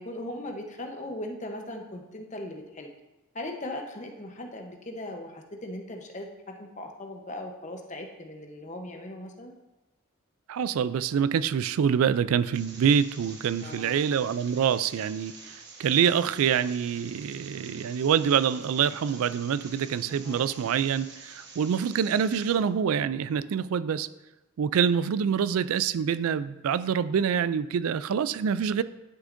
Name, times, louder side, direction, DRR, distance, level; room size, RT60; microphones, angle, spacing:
voice 1, 0.0-2.9 3.3-9.5 13.6-14.0 20.1-20.7, left 1 dB, 35° left, 3 dB, 0.8 m, -39 dB
voice 2, 10.5-15.3 15.8-24.1 24.6-28.8, right 7 dB, 80° right, 16 dB, 0.3 m, -26 dB
sound 1, 12.5-22.5, right 4 dB, 50° right, 1.1 m, -48 dB
11.0 x 6.2 x 2.6 m, 1.0 s
head